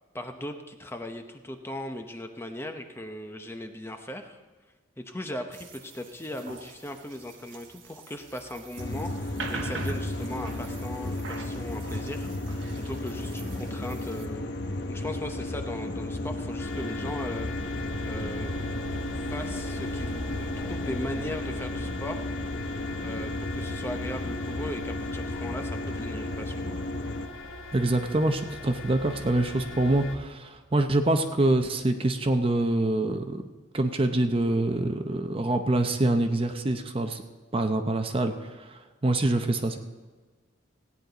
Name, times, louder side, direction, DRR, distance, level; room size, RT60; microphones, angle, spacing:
voice 1, 0.1-4.4 5.0-12.3 12.7-14.5 14.9-17.5 18.0-18.6 19.3-22.3 23.0-26.6, left 1 dB, 10° left, 5 dB, 0.7 m, -38 dB
sound 1, 5.5-14.3, right 4 dB, 70° right, 1.2 m, -43 dB
sound 2, 8.8-27.3, left 1 dB, 55° left, 0.9 m, -33 dB
sound 3, 16.5-30.1, left 2 dB, 75° left, 1.5 m, -39 dB
voice 2, 27.7-33.4 33.7-37.2 37.5-39.8, right 2 dB, 30° right, 6 dB, 0.7 m, -25 dB
16.5 x 9.7 x 3.9 m, 1.3 s
head